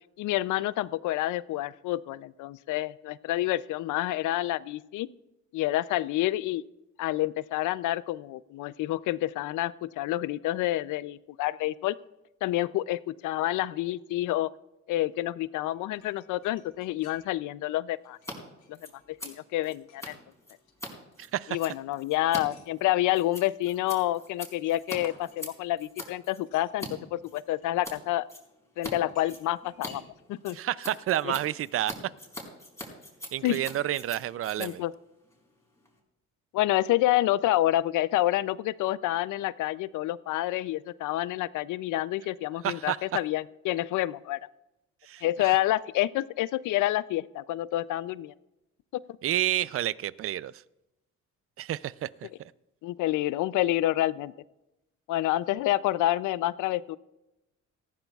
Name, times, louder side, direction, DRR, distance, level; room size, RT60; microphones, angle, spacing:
voice 1, 0.2-5.1 5.5-6.6 7.0-11.9 12.4-14.5 14.9-18.2 18.7-18.8 19.2-20.1 21.5-28.3 28.8-30.0 30.3-30.6 31.2-31.3 33.4-33.6 34.6-34.9 36.5-44.4 45.2-48.3 52.8-54.3 55.1-57.0, left 15 dB, 85° left, 18 dB, 0.5 m, -28 dB
sound 1, 15.7-17.5 17.8-19.2 19.5-20.2 20.5-22.7 23.1-23.9 24.2-24.8 25.1-25.9 26.4-27.9 28.8-30.5 30.8-30.9, left 6 dB, 65° left, 3.5 m, -59 dB
Scissors, 18.1-18.3 18.6-26.9 27.2-28.0 28.3-28.9 29.2-36.0, left 1 dB, 10° left, 4.3 m, -43 dB
voice 2, 30.5-31.9 33.3-34.8 42.6-43.0 45.0-45.6 49.2-50.5 51.6-52.3, right 13 dB, 50° right, 19 dB, 0.4 m, -30 dB
18.5 x 14.5 x 2.4 m, 0.93 s
cardioid pair, 90°, 30 cm